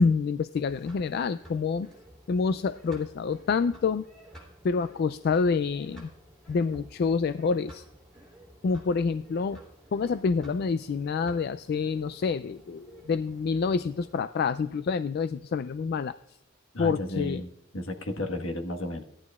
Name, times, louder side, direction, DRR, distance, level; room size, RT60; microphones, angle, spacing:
voice 1, 0.0-1.9 2.3-4.0 4.6-6.1 6.5-7.8 8.6-9.6 9.9-16.1 16.8-17.4, left 5 dB, 50° left, 13 dB, 0.3 m, -27 dB
sound 1, 0.7-14.2, equal, 5° left, 3.1 m, -52 dB
voice 2, 16.7-19.0, left 1 dB, 75° left, 4 dB, 1.4 m, -33 dB
17.0 x 11.0 x 2.4 m, 0.86 s
head